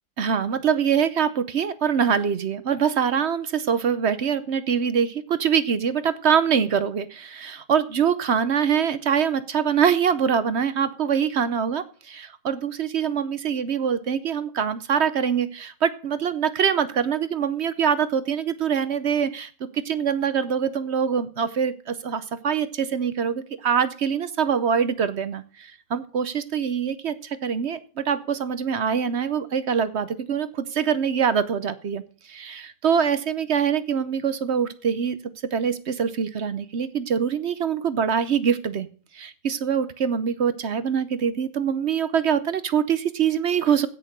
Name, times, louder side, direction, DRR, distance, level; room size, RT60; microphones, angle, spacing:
voice 1, 0.2-32.0 32.3-35.2 35.5-38.9 39.1-43.9, right 7 dB, 55° right, 14 dB, 0.9 m, -24 dB
16.0 x 6.6 x 6.6 m, 0.41 s
omnidirectional pair, 1.5 m